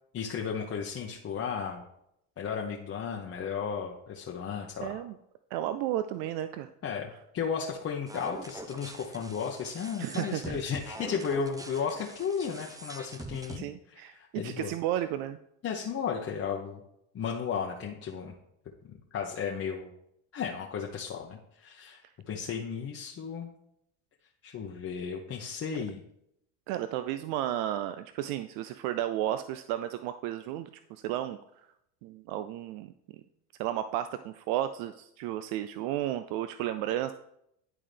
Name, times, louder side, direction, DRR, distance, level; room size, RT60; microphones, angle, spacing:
voice 1, 0.1-1.8 2.4-5.0 6.8-14.7 15.6-16.8 17.1-18.3 19.1-19.9 20.3-23.5 24.4-26.0, left 6 dB, 35° left, 0 dB, 0.9 m, -34 dB
voice 2, 4.8-5.1 5.5-6.7 10.0-10.4 13.6-15.4 25.7-25.8 26.7-30.7 31.0-31.4 32.0-32.9 33.6-37.1, right 12 dB, 65° right, 10 dB, 0.5 m, -33 dB
sound 1, 8.1-13.6, right 2 dB, 10° right, 0.6 m, -44 dB
11.0 x 3.7 x 3.3 m, 0.78 s
supercardioid pair, 85°, 39 cm